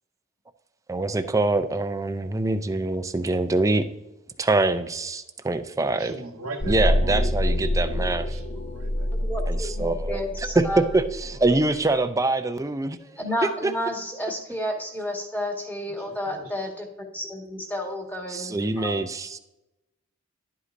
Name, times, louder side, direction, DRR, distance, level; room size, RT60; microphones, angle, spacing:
voice 1, 0.9-3.9 4.4-6.1 6.7-8.3 9.5-10.7 10.9-13.2 13.6-13.7 18.3-19.4, right 2 dB, 15° right, 9 dB, 0.5 m, -25 dB
voice 2, 5.9-7.3 8.2-9.3 16.0-16.5, right 2 dB, 85° right, 3 dB, 1.3 m, -39 dB
sound 1, 6.6-11.6, left 1 dB, 35° left, 0.7 m, -26 dB
voice 3, 9.1-11.1 13.2-18.9, left 1 dB, 10° left, 0 dB, 1.7 m, -31 dB
11.0 x 8.1 x 2.6 m, 0.89 s
head